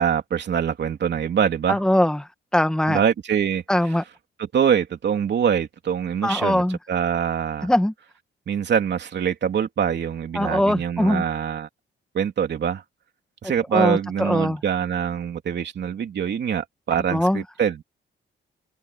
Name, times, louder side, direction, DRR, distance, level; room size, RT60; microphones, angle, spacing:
voice 1, 0.0-1.8 2.9-3.6 4.4-7.7 8.5-11.7 12.1-12.8 13.4-17.8, right 8 dB, 55° right, 3.0 m, -24 dB
voice 2, 1.7-3.0 3.7-4.0 6.2-6.8 7.6-7.9 10.3-11.2 13.7-14.6 17.1-17.4, left 1 dB, 5° left, 1.2 m, -21 dB
wide cardioid pair, 155°, 21 cm